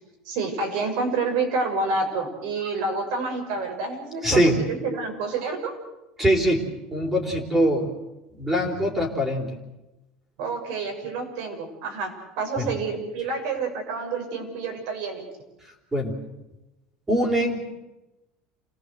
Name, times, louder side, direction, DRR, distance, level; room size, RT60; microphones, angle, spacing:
voice 1, 0.2-5.7 10.4-12.1 12.4-15.3, right 3 dB, 70° right, 3 dB, 6.6 m, -28 dB
voice 2, 4.2-4.6 6.2-7.9 8.4-9.6 12.6-12.7 15.9-16.2 17.1-17.6, equal, 10° right, 1 dB, 3.8 m, -22 dB
27.5 x 18.0 x 8.1 m, 1.0 s
cardioid pair, 165°, 2 cm